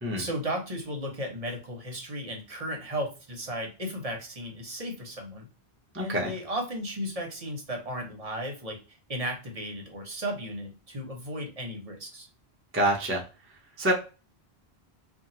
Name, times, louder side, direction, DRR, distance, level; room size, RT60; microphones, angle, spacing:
voice 1, 0.1-5.5 6.0-12.3, equal, 40° right, 1 dB, 0.8 m, -35 dB
voice 2, 5.9-6.3 12.7-13.2 13.8-13.9, right 1 dB, 20° right, 0 dB, 0.4 m, -26 dB
2.8 x 2.4 x 2.6 m, 0.33 s
omnidirectional pair, 1.0 m